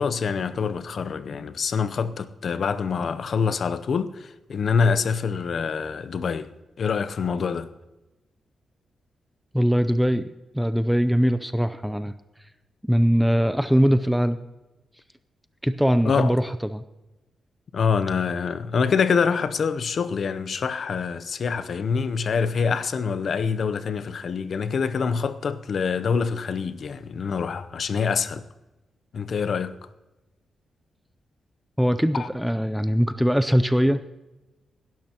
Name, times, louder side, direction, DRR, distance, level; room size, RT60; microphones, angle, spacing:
voice 1, 0.0-6.5 6.8-7.7 16.0-16.3 17.7-28.4 29.1-29.8 32.1-32.3, left 5 dB, 50° left, 0.7 m, -25 dB
voice 2, 9.5-10.2 10.5-12.1 12.8-14.4 15.6-16.8 31.8-34.1, equal, ahead, 0.4 m, -21 dB
17.0 x 12.0 x 2.9 m
wide cardioid pair, 130°, 0 cm